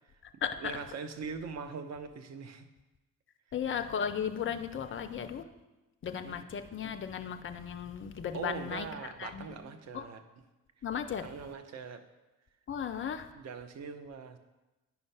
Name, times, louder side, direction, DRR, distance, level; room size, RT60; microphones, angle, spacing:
voice 1, 0.1-2.7 6.2-6.4 8.3-10.2 11.2-12.0 13.3-14.4, right 5 dB, 40° right, 8 dB, 0.8 m, -42 dB
voice 2, 3.5-5.4 6.0-8.9 9.2-9.6 9.9-10.0 10.8-11.2 12.7-13.3, left 8 dB, 30° left, 8 dB, 0.6 m, -35 dB
9.3 x 5.4 x 3.5 m, 1.1 s
figure-of-eight pair, 45°, 40 cm